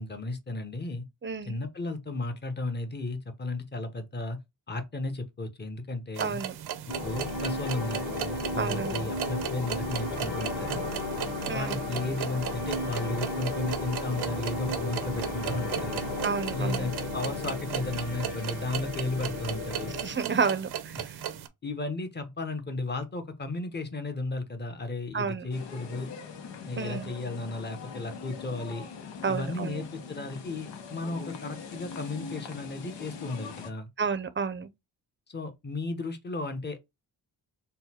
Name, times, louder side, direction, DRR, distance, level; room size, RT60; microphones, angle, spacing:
voice 1, 0.0-1.0 1.5-4.4 4.7-6.4 7.0-10.9 11.5-16.0 16.5-19.9 21.0-21.1 21.6-26.1 26.7-28.9 29.3-33.9 35.3-36.8, left 2 dB, 25° left, 1.0 m, -34 dB
voice 2, 1.2-1.6 6.2-6.5 8.6-9.1 11.5-11.9 16.2-16.9 20.0-21.2 25.1-25.5 26.8-27.1 29.2-29.8 34.0-34.7, right 5 dB, 25° right, 0.6 m, -31 dB
sound 1, 6.2-21.5, right 10 dB, 60° right, 0.7 m, -37 dB
sound 2, 6.9-20.2, left 2 dB, 45° left, 1.5 m, -34 dB
sound 3, 25.5-33.7, left 5 dB, 75° left, 1.0 m, -42 dB
3.9 x 2.3 x 4.2 m
cardioid pair, 85°, 43 cm